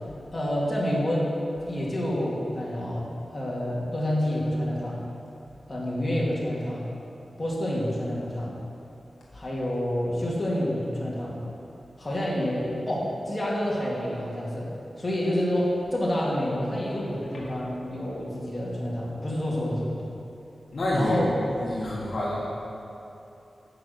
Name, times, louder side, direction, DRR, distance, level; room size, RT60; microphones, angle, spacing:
voice 1, 0.3-1.3 1.6-3.1 3.3-5.0 5.7-6.8 7.4-8.5 9.3-11.4 12.0-14.7 15.0-20.0 20.9-21.3, left 1 dB, 25° left, -6 dB, 2.4 m, -28 dB
voice 2, 20.7-21.3 21.6-22.4, left 1 dB, 55° left, -6 dB, 1.6 m, -27 dB
9.4 x 6.0 x 7.9 m, 2.8 s
wide cardioid pair, 130°, 0 cm